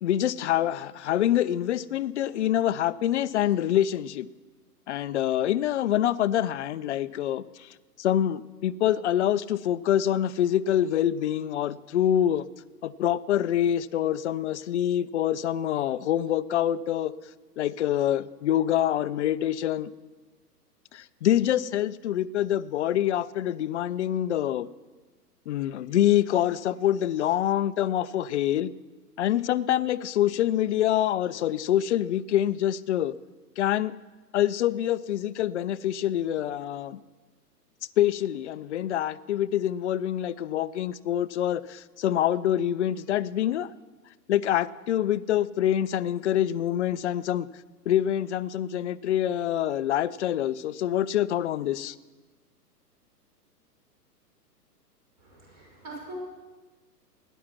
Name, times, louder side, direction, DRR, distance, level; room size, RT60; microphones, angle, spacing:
voice 1, 0.0-4.3 4.9-7.7 8.0-12.5 12.8-17.1 17.6-19.9 20.9-24.7 25.5-28.7 29.2-33.1 33.6-33.9 34.3-37.0 38.0-43.7 44.3-47.5 47.9-51.9, left 11 dB, 45° left, 15 dB, 0.6 m, -26 dB
voice 2, 55.2-56.2, right 2 dB, 35° right, -2 dB, 5.6 m, -43 dB
18.0 x 10.0 x 6.0 m, 1.3 s
figure-of-eight pair, 120°, 48 cm